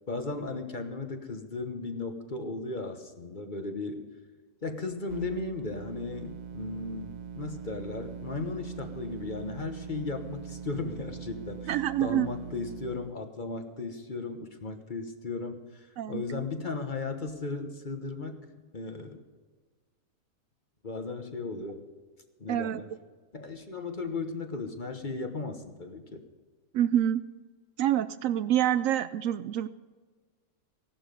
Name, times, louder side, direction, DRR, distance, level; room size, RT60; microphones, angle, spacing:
voice 1, 0.1-4.0 4.6-18.4 18.7-19.2 20.8-21.9 22.4-22.9 23.3-26.2, left 3 dB, 35° left, 6 dB, 1.2 m, -36 dB
sound 1, 5.1-13.1, right 7 dB, 50° right, 0.5 m, -42 dB
voice 2, 11.7-12.3 16.0-16.4 22.5-22.8 26.7-27.2 27.8-29.7, right 11 dB, 70° right, 14 dB, 0.9 m, -27 dB
16.5 x 11.5 x 5.3 m, 1.4 s
omnidirectional pair, 1.5 m